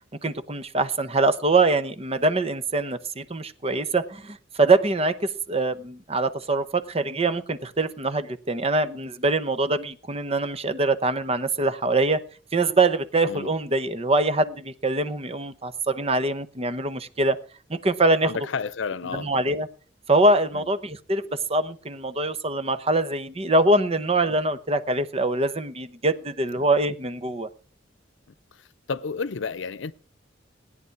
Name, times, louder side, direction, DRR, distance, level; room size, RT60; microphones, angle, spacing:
voice 1, 0.2-12.2 12.5-17.4 17.7-18.3 19.1-19.7 20.1-21.2 21.5-27.5, right 2 dB, 30° right, 0.8 m, -23 dB
voice 2, 18.2-19.3 20.5-20.6 26.6-26.7 28.9-29.9, left 5 dB, 75° left, 0.6 m, -31 dB
16.5 x 9.8 x 4.6 m
head